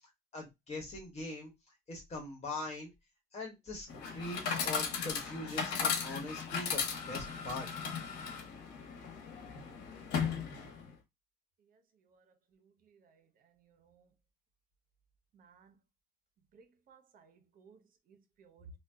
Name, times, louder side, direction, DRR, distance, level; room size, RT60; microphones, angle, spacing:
voice 1, 0.3-1.5 1.9-2.9 3.3-3.9 4.1-7.7, left 2 dB, 40° left, 1.2 m, -42 dB
Chatter / Coin (dropping), 3.9-10.9, left 6 dB, 90° left, 0.9 m, -36 dB
voice 2, 15.3-15.7 16.5-17.8 18.1-18.7, right 7 dB, 55° right, 0.7 m, -60 dB
2.6 x 2.1 x 3.4 m
cardioid pair, 110°, 17 cm